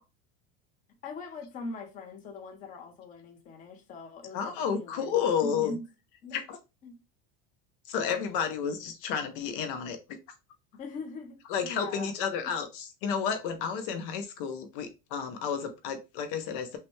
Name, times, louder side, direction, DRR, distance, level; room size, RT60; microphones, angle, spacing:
voice 1, 1.0-5.8 6.2-6.4 6.8-6.9 10.7-12.1 12.4-12.5, left 3 dB, 25° left, 0.8 m, -41 dB
voice 2, 4.3-5.7 6.3-6.6 7.9-10.2 11.5-16.8, left 7 dB, 60° left, 0.8 m, -31 dB
5.7 x 2.2 x 3.1 m
supercardioid pair, 165°, 30 cm